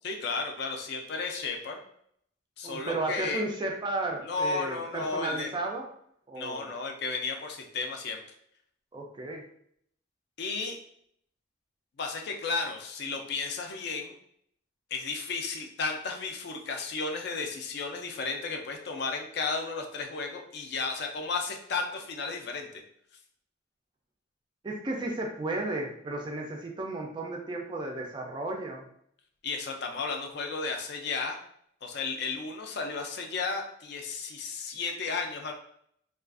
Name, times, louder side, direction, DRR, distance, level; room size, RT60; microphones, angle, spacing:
voice 1, 0.0-1.8 2.6-3.4 4.2-5.5 6.4-8.2 10.4-10.8 12.0-14.2 14.9-22.8 29.4-31.4 31.8-35.5, left 4 dB, 55° left, 3 dB, 0.4 m, -33 dB
voice 2, 2.6-5.8 6.3-6.7 8.9-9.4 24.6-28.9, right 2 dB, 25° right, 1 dB, 0.3 m, -33 dB
2.4 x 2.3 x 2.4 m, 0.68 s
head